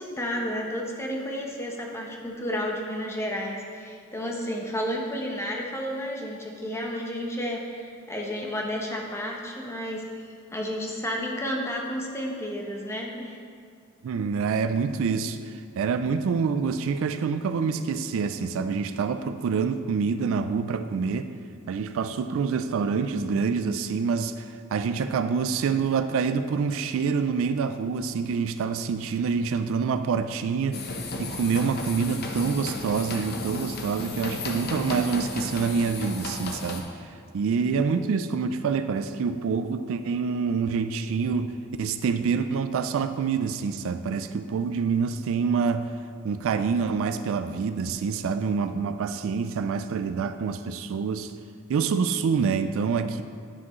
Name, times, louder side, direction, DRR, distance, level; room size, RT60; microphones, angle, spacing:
voice 1, 0.0-13.4, equal, 15° left, 0 dB, 0.8 m, -32 dB
voice 2, 14.0-21.3 21.7-30.8 31.2-36.9 37.3-41.5 41.8-45.9 46.2-51.3 51.7-53.2, right 5 dB, 70° right, 10 dB, 0.3 m, -26 dB
sound 1, 30.7-36.8, left 2 dB, 50° left, 0.8 m, -34 dB
9.7 x 6.0 x 3.0 m, 2.2 s
head